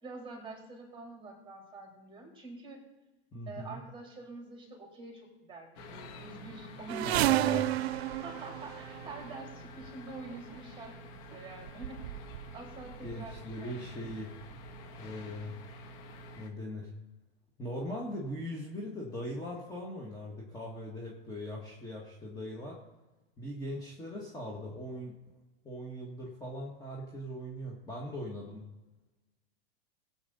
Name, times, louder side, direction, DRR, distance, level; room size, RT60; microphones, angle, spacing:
voice 1, 0.0-2.8 3.5-7.7 8.2-12.0 12.5-14.0, right 3 dB, 15° right, -1 dB, 3.7 m, -46 dB
voice 2, 3.3-3.8 7.0-7.7 13.0-14.3 15.0-15.5 16.4-16.9 17.6-22.8 23.4-25.2 25.6-28.6, equal, 10° left, -2 dB, 1.9 m, -40 dB
sound 1, 5.8-16.5, left 1 dB, 50° left, 1.5 m, -48 dB
sound 2, 6.9-9.4 10.3-10.6 11.3-11.4 11.6-12.5 12.8-13.4 14.1-14.2 14.5-14.6, right 16 dB, 90° right, 0.5 m, -31 dB
19.0 x 8.2 x 4.2 m, 1.1 s
supercardioid pair, 140°, 31 cm